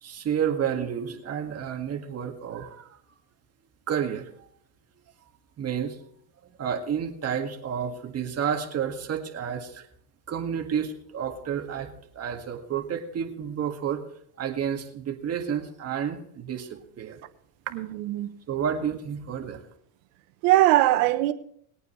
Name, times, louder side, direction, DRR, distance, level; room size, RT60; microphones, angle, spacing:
voice 1, 0.0-3.0 3.9-4.3 5.6-6.0 6.4-9.9 10.3-14.0 14.4-17.2 18.5-19.6, right 8 dB, 35° right, 1.9 m, -30 dB
voice 2, 17.7-18.3 20.4-21.3, right 15 dB, 70° right, 1.2 m, -21 dB
20.5 x 9.2 x 3.2 m
supercardioid pair, 110°, 44 cm